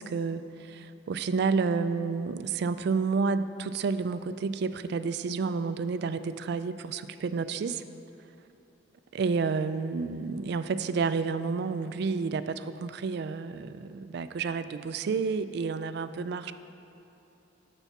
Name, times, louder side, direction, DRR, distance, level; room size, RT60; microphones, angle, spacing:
voice 1, 0.0-7.8 9.2-16.5, right 4 dB, 60° right, 12 dB, 0.3 m, -30 dB
7.0 x 6.9 x 5.8 m, 2.9 s
head